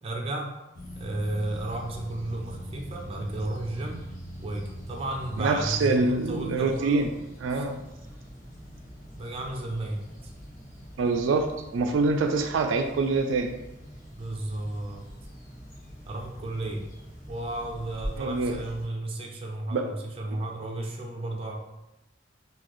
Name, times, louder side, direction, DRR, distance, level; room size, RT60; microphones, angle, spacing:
voice 1, 0.0-0.5 1.0-4.0 4.4-7.1 7.5-7.6 9.2-10.0 14.1-15.0 16.1-16.9 17.3-21.6, right 1 dB, 30° right, 0 dB, 0.5 m, -33 dB
sound 1, 0.7-18.9, equal, 50° left, 0.9 m, -43 dB
voice 2, 5.4-7.1 7.4-7.8 11.0-13.5 18.2-18.6 19.7-19.8, right 3 dB, 85° right, 6 dB, 0.3 m, -25 dB
3.9 x 2.3 x 3.1 m, 0.93 s
head